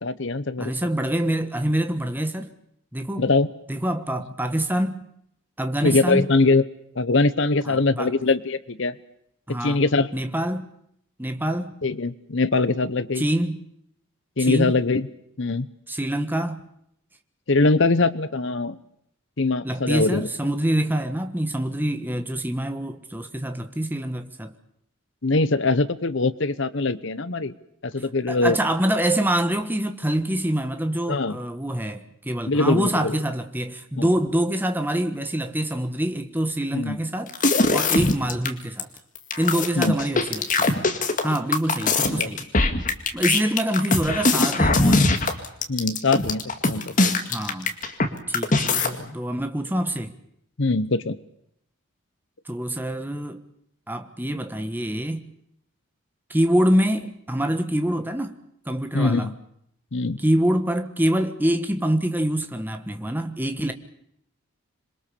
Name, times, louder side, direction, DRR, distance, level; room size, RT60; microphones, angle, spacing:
voice 1, 0.0-0.7 3.2-3.5 5.8-6.6 7.0-9.0 9.5-10.1 11.8-13.2 14.4-15.1 15.4-15.7 17.5-18.8 19.4-20.3 25.2-27.5 27.8-28.6 31.1-31.4 32.5-33.2 34.0-34.1 36.7-37.0 38.0-38.1 39.8-39.9 42.2-42.3 45.7-47.1 48.8-49.1 50.6-51.2 58.9-59.3 59.9-60.2, left 3 dB, 60° left, 0.9 m, -22 dB
voice 2, 0.6-2.5 2.9-3.3 3.7-5.0 5.6-6.3 7.6-8.1 9.5-9.8 10.1-10.7 11.2-11.7 13.2-13.6 14.4-14.8 15.9-16.6 19.6-24.5 28.3-38.9 39.4-40.7 41.2-42.5 43.1-45.1 47.3-47.7 48.3-50.1 52.5-53.4 53.9-55.3 56.3-58.4 58.6-59.3 60.2-63.7, right 1 dB, 10° right, 1.4 m, -25 dB
sound 1, 37.3-38.5 38.8-38.9 39.2-48.1 48.3-48.9, left 3 dB, 35° left, 2.2 m, -21 dB
26.5 x 22.5 x 7.0 m
head